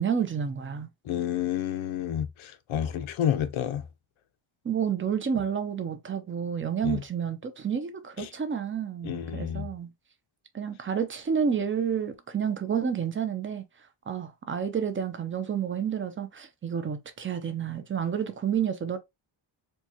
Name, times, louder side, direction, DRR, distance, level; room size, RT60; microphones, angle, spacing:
voice 1, 0.0-0.9 4.6-9.9 10.5-13.6 14.1-19.0, right 7 dB, 25° right, 0.5 m, -30 dB
voice 2, 1.1-3.8 6.8-7.0 8.2-8.3 9.0-9.7, left 10 dB, 75° left, 0.6 m, -30 dB
4.5 x 2.3 x 2.8 m
wide cardioid pair, 180°, 48 cm